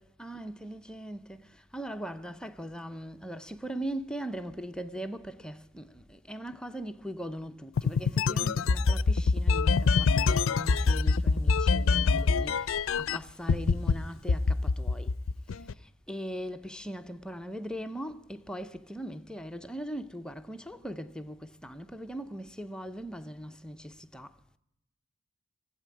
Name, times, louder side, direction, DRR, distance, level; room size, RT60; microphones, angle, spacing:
voice 1, 0.0-15.2 15.5-24.4, equal, 5° left, 0.5 m, -40 dB
sound 1, 7.8-13.2 13.5-13.9 14.3-15.7, left 4 dB, 80° left, 0.4 m, -24 dB
14.5 x 8.4 x 9.7 m
head